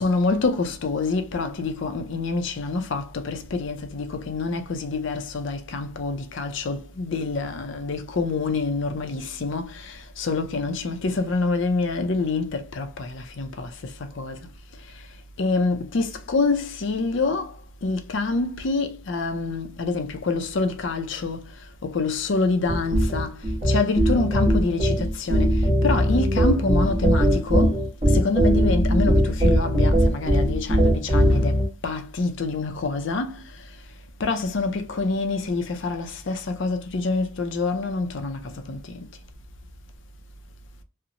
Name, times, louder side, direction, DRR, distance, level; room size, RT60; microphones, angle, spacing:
voice 1, 0.0-13.7 14.2-14.4 15.4-17.5 17.8-21.4 21.8-23.4 23.7-27.8 28.1-31.6 31.8-33.4 34.2-38.8, left 3 dB, 60° left, 0.4 m, -26 dB
sound 1, 22.7-31.7, equal, 25° right, 0.9 m, -20 dB
2.8 x 2.1 x 2.5 m
head